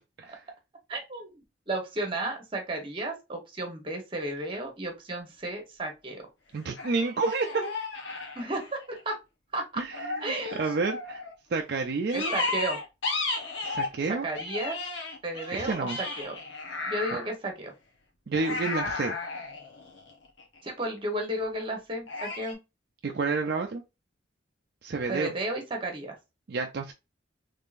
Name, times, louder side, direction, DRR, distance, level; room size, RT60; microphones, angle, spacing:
voice 1, 0.9-6.2 8.3-8.8 9.0-9.2 9.5-9.8 10.2-10.6 12.1-12.8 14.1-14.8 15.2-16.3 16.9-17.7 20.6-22.6 25.1-26.2, right 1 dB, 30° right, 1.1 m, -33 dB
sound 1, 4.4-4.6 6.8-9.0 9.9-11.3 12.1-14.0 14.3-17.3 18.3-20.6 22.1-22.5, left 3 dB, 80° left, 1.1 m, -34 dB
voice 2, 6.5-7.7 9.8-11.2 11.5-12.3 13.6-14.3 15.5-16.0 18.3-19.2 23.0-23.8 24.8-25.3 26.5-26.9, right 4 dB, 55° right, 0.4 m, -30 dB
3.6 x 3.3 x 2.5 m
head